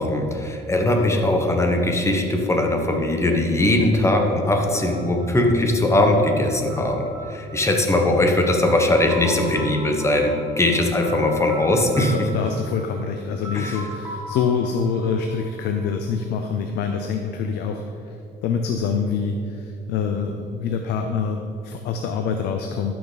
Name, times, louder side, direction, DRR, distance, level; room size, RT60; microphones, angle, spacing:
voice 1, 0.0-12.3 13.5-13.8, left 1 dB, 15° left, 3 dB, 1.1 m, -20 dB
sound 1, 4.8-16.5, equal, 10° right, 1.5 m, -39 dB
voice 2, 12.1-18.1 18.4-22.9, left 6 dB, 85° left, 5 dB, 0.6 m, -25 dB
12.0 x 6.0 x 4.0 m, 2.5 s
cardioid pair, 110°, 17 cm